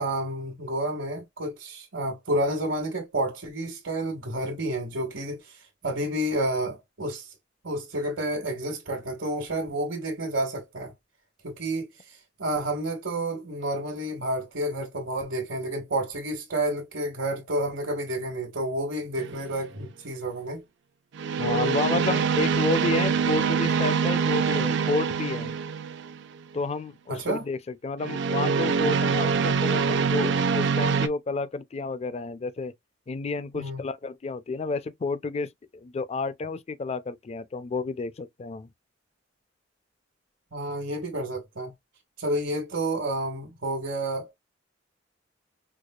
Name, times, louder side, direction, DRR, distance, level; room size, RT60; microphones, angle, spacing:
voice 1, 0.0-7.3 7.6-10.9 11.4-11.9 12.4-20.6 27.1-27.4 33.5-33.8 40.5-41.7 42.2-44.3, right 1 dB, 80° right, 1.3 m, -30 dB
sound 1, 19.2-19.5 21.1-26.2 28.0-31.1, right 6 dB, 65° right, 0.4 m, -25 dB
voice 2, 21.4-25.5 26.5-32.7 33.1-38.7, left 3 dB, 35° left, 0.4 m, -30 dB
4.7 x 2.3 x 2.2 m
head